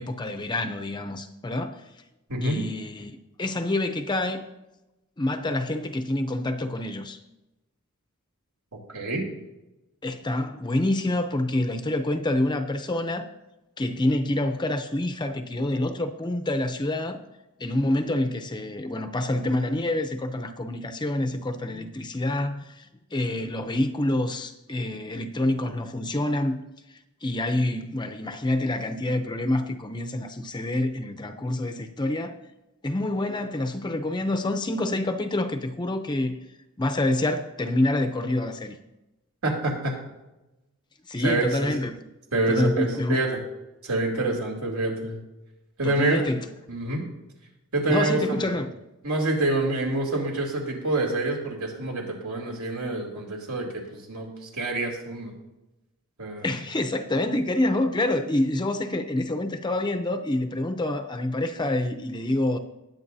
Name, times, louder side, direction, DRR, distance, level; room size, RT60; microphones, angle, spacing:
voice 1, 0.0-1.8 2.4-4.4 5.2-7.2 10.0-13.3 13.8-17.2 17.6-26.6 27.2-32.4 32.8-36.4 36.8-38.8 41.1-42.0 42.5-43.2 45.8-46.4 47.9-48.7 56.4-62.6, left 1 dB, 20° left, 0.6 m, -27 dB
voice 2, 2.3-2.6 8.9-9.2 39.4-40.0 41.2-41.7 42.3-43.3 43.8-45.2 45.8-46.3 46.7-47.1 47.7-48.5 49.0-55.4 56.2-56.5, right 2 dB, 75° right, 2.8 m, -27 dB
19.5 x 8.1 x 2.7 m
head